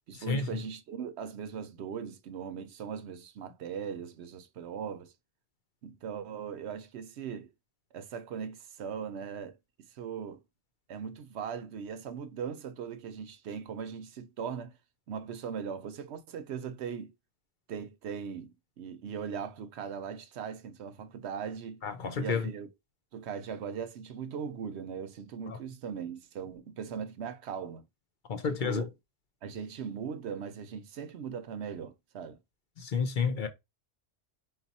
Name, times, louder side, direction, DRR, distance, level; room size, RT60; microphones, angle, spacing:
voice 1, 0.1-5.1 5.8-7.5 7.9-9.6 9.9-10.4 10.9-14.8 15.1-17.1 17.7-21.8 22.2-22.7 23.1-27.9 28.4-28.9 29.4-32.4, right 7 dB, 80° right, 0.9 m, -39 dB
voice 2, 21.8-22.5 25.5-25.6 28.3-28.9 32.8-33.5, left 5 dB, 55° left, 0.7 m, -30 dB
3.9 x 2.4 x 4.0 m
omnidirectional pair, 1.1 m